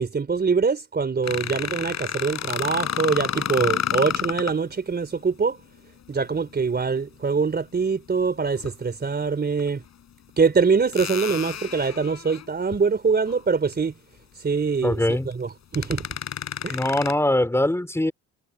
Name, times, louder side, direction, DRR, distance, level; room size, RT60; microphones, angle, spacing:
voice 1, 0.0-5.6 6.1-9.8 10.4-13.9 14.4-16.1 16.6-16.8, right 5 dB, 35° right, 4.0 m, -24 dB
sound 1, 1.2-4.6 6.7-6.9 8.6-8.7 9.6-9.7 10.9-12.8 13.3-13.4 13.7-13.8 15.3-15.4 15.7-17.1, left 9 dB, 60° left, 7.8 m, -30 dB
voice 2, 14.8-15.3 16.7-18.1, left 1 dB, 10° left, 3.6 m, -22 dB
cardioid pair, 90°, 30 cm